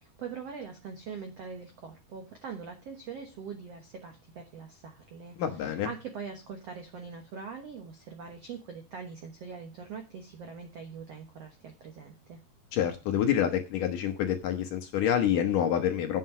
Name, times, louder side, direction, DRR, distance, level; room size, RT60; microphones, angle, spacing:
voice 1, 0.0-12.4, right 6 dB, 75° right, 4 dB, 1.4 m, -43 dB
voice 2, 5.4-5.9 12.7-16.2, left 9 dB, 70° left, 5 dB, 2.2 m, -27 dB
8.8 x 7.6 x 5.5 m, 0.29 s
omnidirectional pair, 4.7 m